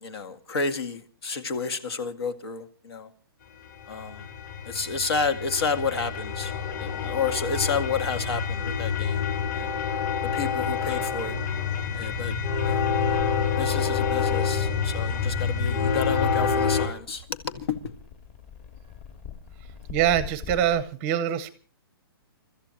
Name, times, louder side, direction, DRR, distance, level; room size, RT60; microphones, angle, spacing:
voice 1, 0.0-3.1 3.9-4.3 4.7-6.5 6.8-9.2 9.5-9.7 10.2-11.4 11.9-12.9 13.6-17.9, left 5 dB, 75° left, 2.2 m, -30 dB
sound 1, 3.7-16.9, left 6 dB, 45° left, 3.4 m, -27 dB
sound 2, 16.7-20.8, left 7 dB, 30° left, 2.0 m, -44 dB
voice 2, 19.9-21.5, right 10 dB, 15° right, 0.7 m, -24 dB
30.0 x 14.0 x 3.0 m
hypercardioid pair, 175°, 13 cm